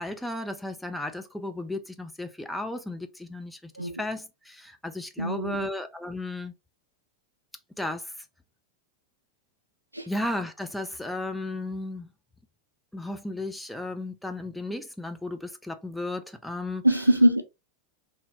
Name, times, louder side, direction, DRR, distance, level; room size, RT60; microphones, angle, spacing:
voice 1, 0.0-6.5 7.8-8.1 10.1-12.1 12.9-16.9, left 2 dB, 5° left, 0.4 m, -34 dB
voice 2, 5.2-5.7 9.9-10.1 16.8-17.4, equal, 85° right, 0.3 m, -22 dB
2.7 x 2.0 x 2.5 m
figure-of-eight pair, 90°, 0 cm